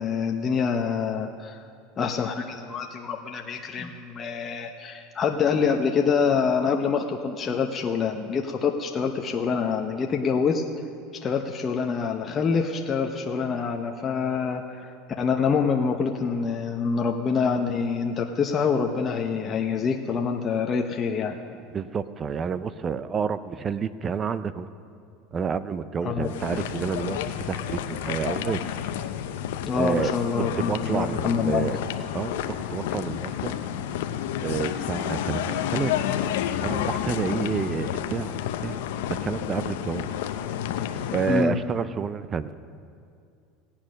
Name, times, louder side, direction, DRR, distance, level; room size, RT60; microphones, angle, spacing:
voice 1, 0.0-1.6 2.0-10.6 11.2-21.6 26.0-26.3 29.6-31.7 41.3-41.6, left 6 dB, 30° left, 2 dB, 0.8 m, -26 dB
voice 2, 21.7-24.7 25.3-28.6 29.7-30.1 30.4-31.8 32.1-33.6 34.4-36.0 36.6-38.8 39.2-40.1 41.1-42.5, right 6 dB, 30° right, 15 dB, 0.5 m, -29 dB
sound 1, 26.2-41.5, left 10 dB, 80° left, 0.7 m, -30 dB
17.0 x 8.8 x 6.3 m, 2.4 s
supercardioid pair, 115°, 0 cm